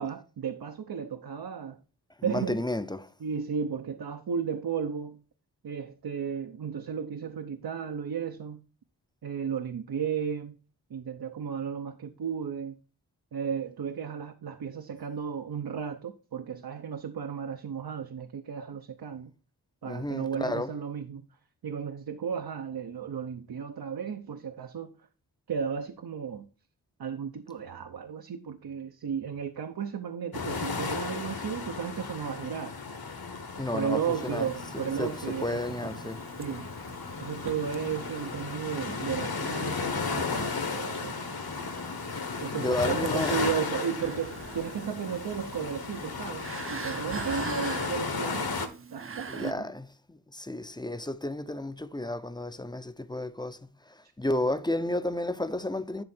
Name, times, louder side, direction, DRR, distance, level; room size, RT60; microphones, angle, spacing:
voice 1, 0.0-1.8 2.2-2.6 3.2-5.2 5.6-8.6 9.2-10.6 10.9-12.8 13.3-19.3 19.8-21.3 21.6-24.9 25.5-26.5 27.0-32.8 33.7-36.0 36.4-36.7 37.2-41.2 42.4-49.6, right 7 dB, 65° right, 0.8 m, -34 dB
voice 2, 2.2-3.1 19.8-20.7 33.6-34.5 34.7-36.2 42.6-43.4 49.3-53.6 53.9-56.0, left 1 dB, 10° left, 0.6 m, -32 dB
sound 1, 30.3-48.7, left 4 dB, 60° left, 1.5 m, -34 dB
sound 2, 34.1-49.5, right 5 dB, 30° right, 0.7 m, -45 dB
11.0 x 3.8 x 4.3 m
cardioid pair, 60°, 41 cm